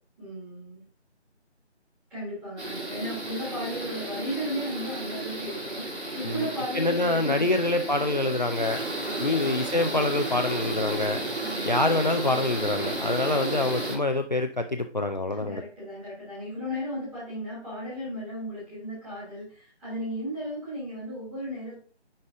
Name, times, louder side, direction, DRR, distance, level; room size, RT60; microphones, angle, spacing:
voice 1, 0.2-0.8 2.1-7.8 9.0-9.5 11.4-11.9 15.3-21.8, equal, 5° right, -10 dB, 1.4 m, -35 dB
sound 1, 2.6-14.0, right 2 dB, 75° right, 2.7 m, -33 dB
voice 2, 6.7-8.8 9.2-11.2 11.6-15.6, left 2 dB, 40° left, 8 dB, 0.4 m, -26 dB
9.6 x 3.3 x 3.6 m, 0.43 s
figure-of-eight pair, 160°, 34 cm